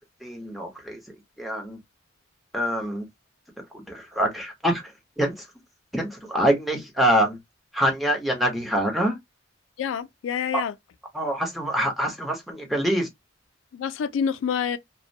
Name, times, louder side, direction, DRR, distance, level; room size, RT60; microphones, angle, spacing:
voice 1, 0.2-1.0 1.4-1.8 2.5-3.1 3.7-4.8 5.2-5.5 5.9-7.4 7.7-9.2 10.5-10.6 11.1-13.1, right 1 dB, ahead, 0.7 m, -25 dB
voice 2, 9.8-10.7 13.7-14.8, left 7 dB, 85° left, 0.3 m, -27 dB
2.3 x 2.1 x 2.5 m
head